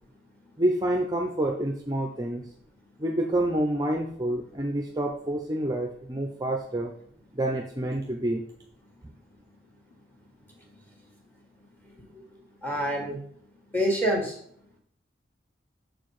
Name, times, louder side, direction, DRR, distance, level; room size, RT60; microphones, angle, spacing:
voice 1, 0.6-2.4 3.0-6.9 7.3-8.4, right 1 dB, 20° right, 2 dB, 0.5 m, -28 dB
voice 2, 11.8-12.2 12.6-13.2 13.7-14.4, equal, 10° left, -1 dB, 1.5 m, -28 dB
6.4 x 4.5 x 4.8 m, 0.65 s
head